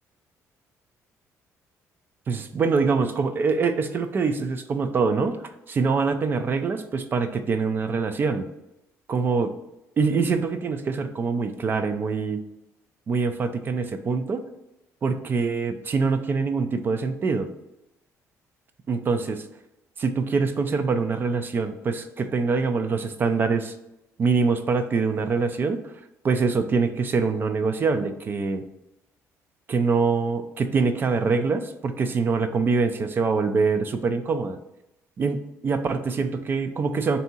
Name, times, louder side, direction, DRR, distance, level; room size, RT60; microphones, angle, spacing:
voice 1, 2.3-5.4 5.7-8.5 9.1-9.5 10.0-12.4 13.1-14.4 15.0-17.5 18.9-19.4 20.0-23.7 24.2-25.8 26.2-28.6 29.7-34.6 35.2-37.2, right 4 dB, 35° right, 9 dB, 0.4 m, -24 dB
3.5 x 2.7 x 4.1 m, 0.90 s
cardioid pair, 130°, 6 cm